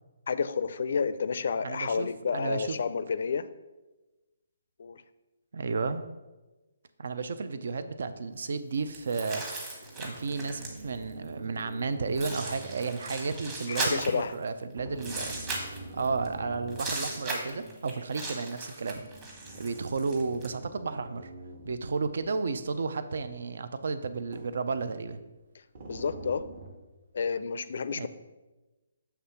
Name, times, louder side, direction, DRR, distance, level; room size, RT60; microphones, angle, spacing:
voice 1, 0.3-3.5 4.8-5.0 13.7-14.3 25.9-26.4 27.1-28.1, left 5 dB, 55° left, 13 dB, 0.4 m, -30 dB
voice 2, 1.6-2.8 5.5-6.1 7.0-9.4 10.0-15.4 15.9-19.1 19.5-21.3 21.6-25.2 27.9-28.1, right 4 dB, 65° right, 11 dB, 0.5 m, -32 dB
sound 1, 8.8-9.0 9.7-13.6 14.7-17.8 18.8-22.8 23.2-23.3 24.3-25.2 25.7-26.7, right 2 dB, 45° right, 1.2 m, -46 dB
sound 2, 8.9-11.0 11.8-11.9 12.1-14.5 15.0-16.3 16.7-20.5, right 2 dB, 15° right, 1.1 m, -37 dB
7.3 x 3.4 x 5.7 m, 1.1 s
hypercardioid pair, 165°, 0 cm